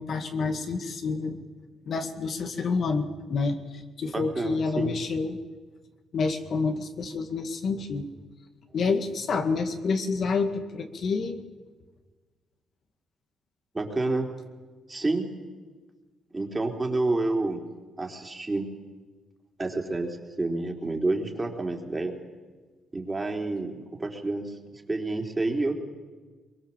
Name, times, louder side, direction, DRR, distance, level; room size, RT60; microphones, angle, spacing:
voice 1, 0.0-1.4 1.9-5.4 6.1-8.1 8.7-11.4, left 4 dB, 55° left, 6 dB, 2.1 m, -28 dB
voice 2, 4.1-4.9 13.7-14.3 14.9-15.3 16.3-17.6 18.0-18.7 19.6-22.1 22.9-25.8, right 2 dB, 20° right, 2 dB, 3.6 m, -29 dB
22.5 x 22.5 x 7.4 m, 1.4 s
cardioid pair, 90°, 0 cm